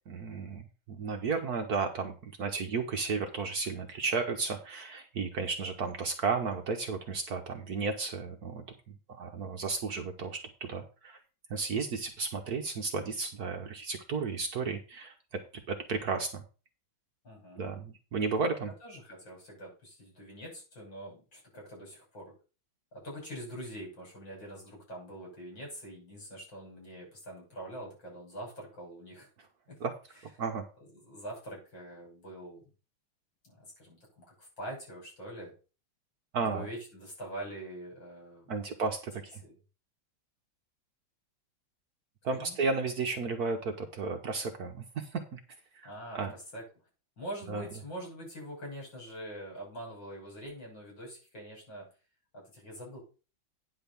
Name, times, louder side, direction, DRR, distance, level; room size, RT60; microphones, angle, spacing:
voice 1, 0.1-0.6 0.9-8.6 9.1-11.2 11.5-15.1 15.7-16.4 17.6-18.7 29.8-29.9 30.4-30.6 36.3-36.7 38.5-39.4 42.2-45.4 45.7-45.9 46.1-46.3 47.5-47.7, right 4 dB, 55° right, 5 dB, 1.3 m, -33 dB
voice 2, 17.2-17.6 18.8-22.4 22.9-29.3 29.7-29.8 31.1-32.6 33.4-35.5 36.4-38.7 39.4-39.5 42.3-42.6 45.8-46.7 47.2-51.9 52.3-53.0, right 1 dB, 65° left, -2 dB, 6.9 m, -44 dB
9.7 x 4.1 x 6.8 m, 0.34 s
omnidirectional pair, 2.2 m